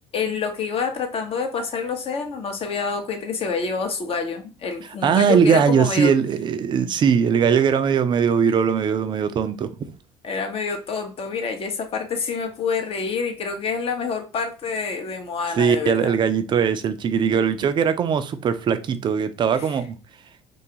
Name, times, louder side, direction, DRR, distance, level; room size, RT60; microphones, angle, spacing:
voice 1, 0.1-6.1 10.2-16.1, left 5 dB, 40° left, 0.7 m, -27 dB
voice 2, 5.0-9.7 15.6-20.0, right 7 dB, 30° right, 0.4 m, -20 dB
2.5 x 2.3 x 2.8 m
hypercardioid pair, 65°, 15 cm